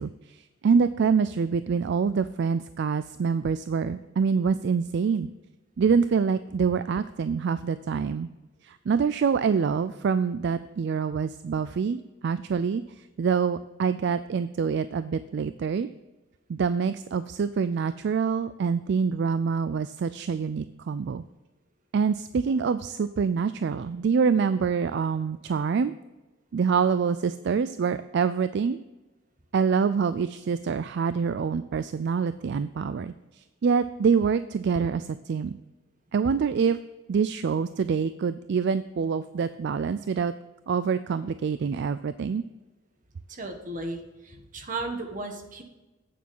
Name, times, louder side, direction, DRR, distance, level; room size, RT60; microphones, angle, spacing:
voice 1, 0.0-5.3 5.8-8.3 8.6-12.8 13.2-15.9 16.5-21.2 21.9-25.9 26.5-28.8 29.5-35.6 36.1-36.8 37.1-40.3 40.7-42.4, right 6 dB, 60° right, 13 dB, 0.3 m, -26 dB
voice 2, 43.3-45.6, right 2 dB, 40° right, 4 dB, 1.5 m, -35 dB
8.5 x 7.3 x 5.5 m, 1.1 s
head